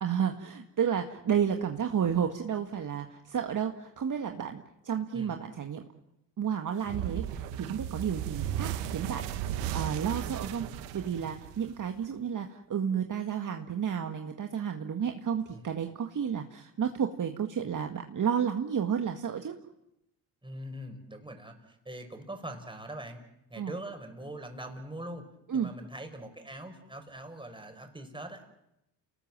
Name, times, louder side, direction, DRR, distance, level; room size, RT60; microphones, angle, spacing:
voice 1, 0.0-5.8 6.4-19.5 23.6-23.7 25.5-25.7, right 8 dB, 40° right, 5 dB, 1.9 m, -31 dB
sound 1, 6.9-12.0, right 11 dB, 80° right, 1.7 m, -35 dB
voice 2, 20.4-23.2 23.5-25.3 25.5-28.4, right 1 dB, 10° right, 5 dB, 5.6 m, -42 dB
29.5 x 19.0 x 7.5 m, 0.85 s
hypercardioid pair, 65°, 48 cm